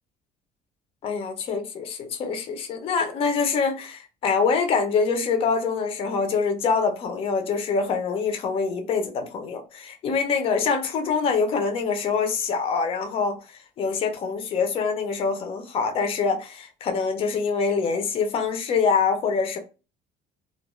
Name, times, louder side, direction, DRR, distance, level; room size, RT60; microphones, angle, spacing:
voice 1, 1.0-13.4 13.8-19.6, left 5 dB, 30° left, 0.4 m, -25 dB
2.2 x 2.1 x 2.9 m
cardioid pair, 175°, 18 cm